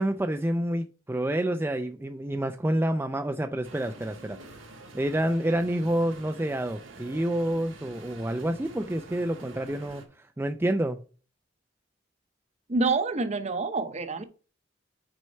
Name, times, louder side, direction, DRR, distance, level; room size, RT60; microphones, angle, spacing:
voice 1, 0.0-4.4 4.9-11.0, right 1 dB, 10° right, 0.4 m, -28 dB
sound 1, 3.6-10.1, right 2 dB, 85° right, 1.7 m, -47 dB
voice 2, 12.7-14.2, right 3 dB, 35° right, 0.8 m, -27 dB
6.3 x 4.5 x 5.4 m
head